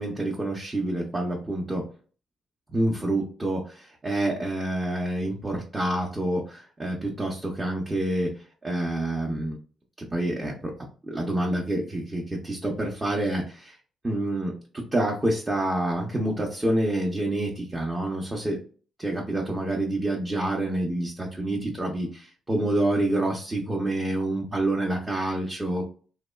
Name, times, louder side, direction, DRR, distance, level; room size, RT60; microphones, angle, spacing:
voice 1, 0.0-1.9 2.7-9.6 10.1-10.7 11.1-13.8 14.0-18.6 19.0-25.8, right 1 dB, 20° right, -1 dB, 0.6 m, -27 dB
2.8 x 2.1 x 2.3 m, 0.40 s
cardioid pair, 90°, 0 cm